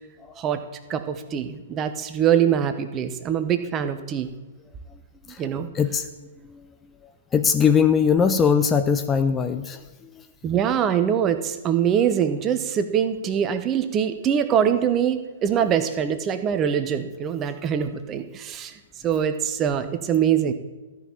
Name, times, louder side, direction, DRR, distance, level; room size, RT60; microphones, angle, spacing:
voice 1, 0.9-4.3 5.4-5.7 10.4-18.7 19.0-20.5, right 8 dB, 25° right, 10 dB, 0.9 m, -23 dB
voice 2, 7.3-9.8, left 6 dB, 15° left, 8 dB, 0.5 m, -20 dB
13.5 x 5.7 x 8.8 m, 1.2 s
figure-of-eight pair, 115°, 0 cm